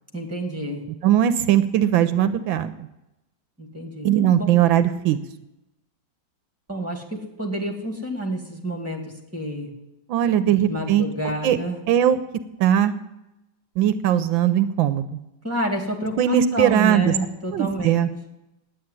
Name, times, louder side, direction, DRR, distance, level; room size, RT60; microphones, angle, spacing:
voice 1, 0.1-0.8 3.6-4.1 4.4-4.6 6.7-9.7 10.5-11.8 15.4-18.0, right 1 dB, 5° right, 2 dB, 2.1 m, -29 dB
voice 2, 1.0-2.7 4.0-5.2 10.1-11.1 11.4-11.6 11.9-12.2 12.6-12.9 13.8-15.2 16.2-17.1 17.5-18.1, right 10 dB, 80° right, 12 dB, 1.4 m, -19 dB
9.2 x 8.8 x 9.7 m, 0.93 s
omnidirectional pair, 2.1 m